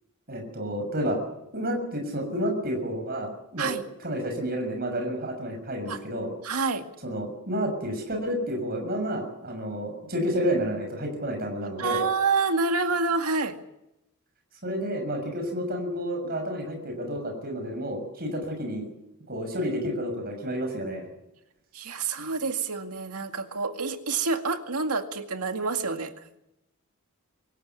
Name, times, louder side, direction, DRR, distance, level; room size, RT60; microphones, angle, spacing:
voice 1, 0.3-1.2 1.5-3.7 4.0-6.3 7.0-12.1 14.6-18.9 19.3-21.1, equal, 45° right, 4 dB, 6.7 m, -30 dB
voice 2, 6.4-6.9 11.8-13.6 21.7-26.1, right 4 dB, 90° right, 6 dB, 2.1 m, -27 dB
25.0 x 15.5 x 9.6 m, 0.86 s
head